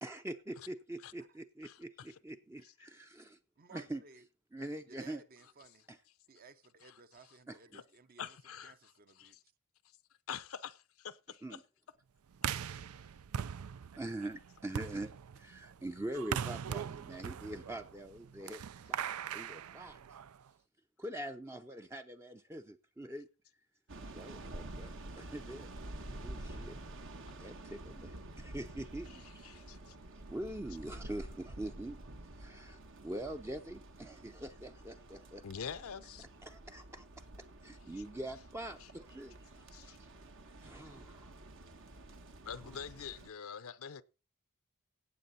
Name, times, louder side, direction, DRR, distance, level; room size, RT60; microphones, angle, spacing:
voice 1, 0.0-3.4 3.7-4.0 4.5-5.2 5.9-6.0 7.5-7.6 11.4-11.6 14.0-20.0 21.0-23.3 24.1-25.7 26.2-26.8 27.4-29.4 30.3-32.0 32.4-35.4 36.4-37.1 37.6-39.3 40.6-41.3, right 1 dB, 10° right, 0.5 m, -44 dB
voice 2, 1.6-2.2 2.6-2.7 6.8-6.9 7.2-7.3 7.7-7.8 8.2-9.4 10.3-11.6 29.1-30.0 35.4-36.2 38.8-38.9 39.7-40.0 42.4-44.0, left 7 dB, 70° left, 0.6 m, -46 dB
voice 3, 3.6-4.3 4.9-5.9 6.3-8.4 8.6-9.4, right 4 dB, 45° right, 0.8 m, -58 dB
sound 1, 12.3-20.5, right 8 dB, 90° right, 0.5 m, -41 dB
sound 2, 23.9-43.3, right 1 dB, 60° right, 1.2 m, -49 dB
17.0 x 7.5 x 4.1 m
head